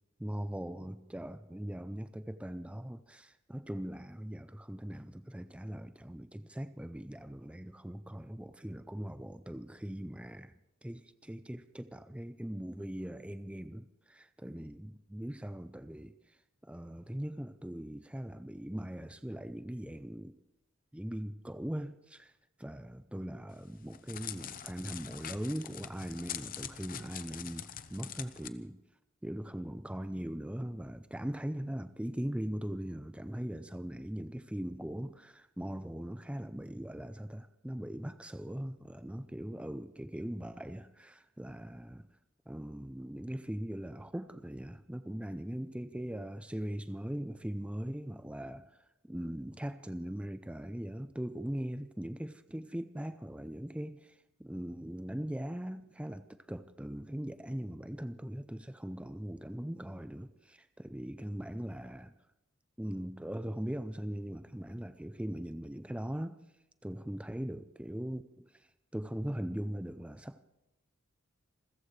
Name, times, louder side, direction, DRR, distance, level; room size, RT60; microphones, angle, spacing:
voice 1, 0.2-10.5 10.8-20.4 20.9-22.3 22.6-28.8 29.2-42.1 42.5-62.1 62.8-66.4 66.8-70.4, equal, 5° right, 0.4 m, -40 dB
Crackle, 23.5-28.5, left 9 dB, 40° left, 0.7 m, -44 dB
28.0 x 14.5 x 3.2 m
head